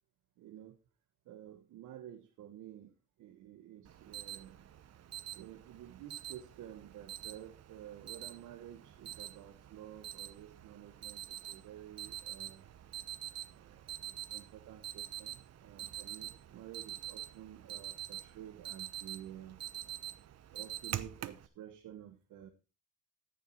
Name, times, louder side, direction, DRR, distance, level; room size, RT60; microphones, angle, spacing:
voice 1, 0.4-0.8 1.2-4.7 5.4-12.7 13.5-19.6 20.5-22.5, right 11 dB, 85° right, 6 dB, 1.3 m, -51 dB
Alarm, 3.8-21.5, right 12 dB, 55° right, 0.9 m, -46 dB
13.5 x 7.0 x 4.4 m, 0.31 s
cardioid pair, 90°, 30 cm